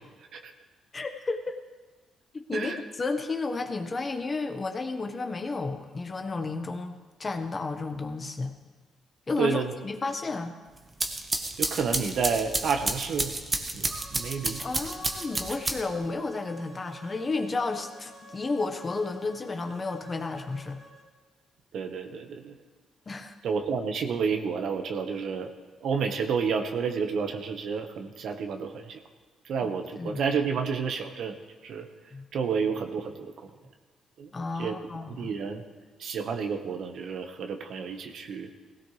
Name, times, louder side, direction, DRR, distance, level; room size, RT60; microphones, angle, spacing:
voice 1, 0.9-1.5 2.3-8.5 9.3-10.5 14.6-20.8 23.1-23.3 29.6-29.7 30.0-30.2 32.1-32.2 34.3-35.3, left 3 dB, 30° left, 6 dB, 1.3 m, -32 dB
voice 2, 9.4-9.7 11.6-13.3 13.7-14.6 21.7-22.5 23.4-25.5 25.8-29.0 29.4-31.3 31.6-31.9 32.3-33.3 34.2-34.3 34.6-34.7 35.1-35.6 36.0-38.5, right 6 dB, 70° right, 5 dB, 1.3 m, -30 dB
sound 1, 10.8-16.1, right 2 dB, 25° right, 1.3 m, -31 dB
sound 2, 13.9-21.1, right 2 dB, 50° right, 2.5 m, -50 dB
17.5 x 16.5 x 3.3 m, 1.3 s
cardioid pair, 90°, 0 cm